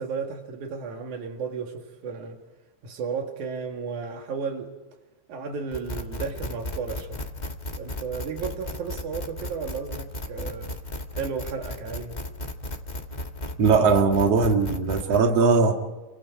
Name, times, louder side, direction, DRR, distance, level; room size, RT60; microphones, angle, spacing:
voice 1, 0.0-2.4 2.8-4.7 5.3-7.2 7.8-10.7 11.1-12.1, right 5 dB, 85° right, 3.4 m, -33 dB
sound 1, 5.7-15.2, left 1 dB, 30° left, 0.8 m, -35 dB
voice 2, 13.6-15.7, right 4 dB, 60° right, 2.9 m, -19 dB
28.5 x 24.0 x 4.7 m
omnidirectional pair, 3.4 m